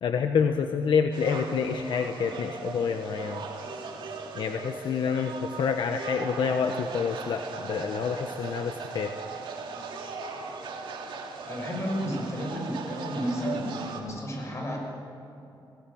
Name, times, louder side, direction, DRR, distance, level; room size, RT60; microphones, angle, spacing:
voice 1, 0.0-3.4 4.3-9.1, left 6 dB, 75° left, 6 dB, 1.1 m, -28 dB
sound 1, 1.1-14.0, right 4 dB, 85° right, 3.2 m, -38 dB
voice 2, 11.5-14.8, equal, 35° left, 0 dB, 6.4 m, -32 dB
21.0 x 18.0 x 8.7 m, 2.9 s
wide cardioid pair, 120°, 8 cm